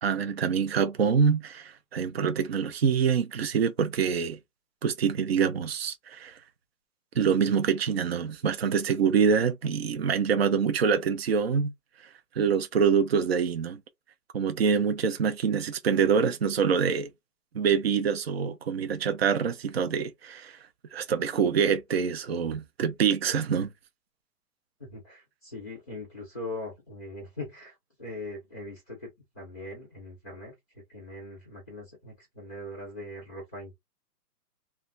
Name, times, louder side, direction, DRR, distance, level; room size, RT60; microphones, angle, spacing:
voice 1, 0.0-4.4 4.8-6.3 7.2-11.7 12.4-13.8 14.3-17.1 17.5-20.6 20.9-23.7, right 6 dB, 45° right, 0.5 m, -25 dB
voice 2, 24.8-29.1 29.3-30.5 30.9-33.7, left 2 dB, 10° left, 0.5 m, -41 dB
2.3 x 2.2 x 3.8 m
hypercardioid pair, 160°, 47 cm